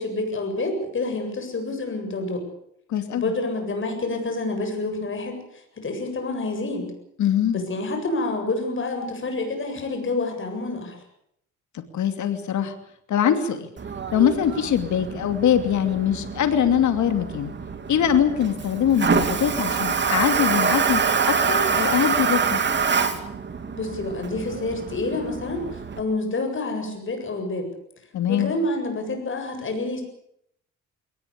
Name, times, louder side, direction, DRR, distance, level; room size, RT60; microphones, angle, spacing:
voice 1, 0.0-2.5 3.2-6.9 7.5-11.0 23.7-27.7 28.3-30.0, left 2 dB, 40° left, 5 dB, 7.9 m, -28 dB
voice 2, 2.9-3.3 7.2-7.6 11.7-12.7 13.1-13.7 14.1-17.5 17.9-22.6 28.1-28.5, left 9 dB, 70° left, 7 dB, 2.8 m, -23 dB
Toilet flush, 13.8-26.0, right 5 dB, 35° right, 2.6 m, -26 dB
22.0 x 19.5 x 8.7 m, 0.74 s
cardioid pair, 90°, 30 cm